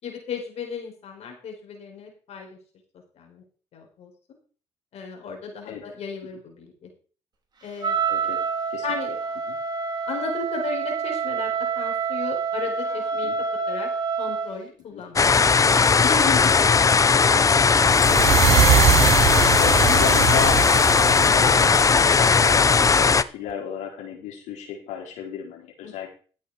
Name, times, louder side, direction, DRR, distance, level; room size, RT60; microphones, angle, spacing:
voice 1, 0.0-2.6 3.2-3.4 3.7-4.1 4.9-6.9 7.6-7.9 8.8-9.1 10.1-13.3 13.7-13.9 14.2-15.3 15.6-15.7 16.0-17.1 19.8-20.1 25.8-25.9, left 5 dB, 60° left, 1 dB, 4.5 m, -35 dB
Wind instrument woodwind instrument, 7.8-14.6, right 5 dB, 35° right, 4.1 m, -27 dB
voice 2, 8.1-8.4 8.7-9.2 9.5-9.6 13.2-13.4 14.9-15.0 19.6-20.7 21.1-26.1, left 7 dB, 80° left, -1 dB, 4.4 m, -33 dB
sound 1, 15.2-23.2, left 5 dB, 30° left, 0.7 m, -18 dB
sound 2, 17.9-22.9, right 12 dB, 60° right, 0.7 m, -23 dB
12.5 x 8.4 x 4.8 m, 0.39 s
supercardioid pair, 80°, 12 cm